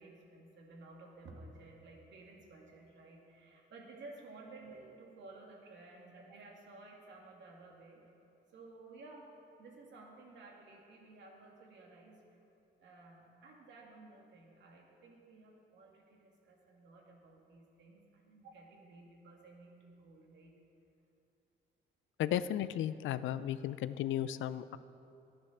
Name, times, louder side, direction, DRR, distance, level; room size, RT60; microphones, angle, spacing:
voice 1, 0.0-8.0 8.5-9.3 9.6-12.2 12.8-20.5, right 2 dB, 65° right, -1 dB, 2.5 m, -55 dB
voice 2, 22.2-24.8, left 11 dB, 75° left, 15 dB, 0.5 m, -34 dB
11.0 x 10.0 x 6.6 m, 2.9 s
cardioid pair, 90°, 20 cm